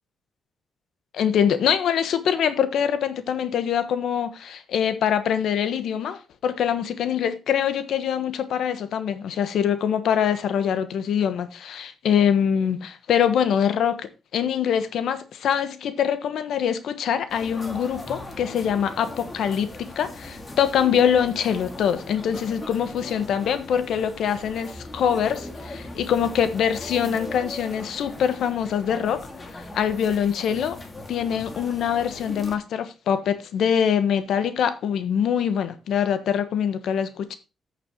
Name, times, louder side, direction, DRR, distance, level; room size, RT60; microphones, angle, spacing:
voice 1, 1.1-29.3 29.7-30.8 31.1-37.3, left 8 dB, 80° left, 1.2 m, -24 dB
sound 1, 17.3-32.5, left 2 dB, 25° left, 2.0 m, -39 dB
15.0 x 6.7 x 3.0 m
cardioid pair, 115°, 0 cm